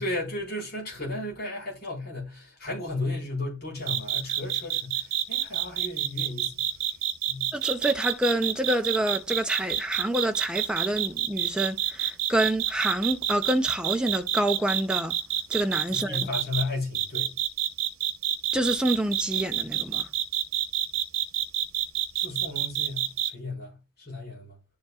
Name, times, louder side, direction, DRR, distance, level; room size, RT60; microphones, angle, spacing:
voice 1, 0.0-6.5 7.3-7.5 15.9-17.3 22.1-24.6, left 2 dB, 50° left, 4.3 m, -34 dB
sound 1, 3.9-16.6 16.9-23.3, right 12 dB, 85° right, 1.0 m, -27 dB
voice 2, 7.5-15.2 15.5-16.3 18.5-20.1, right 1 dB, 5° right, 0.6 m, -27 dB
11.5 x 5.1 x 2.4 m
head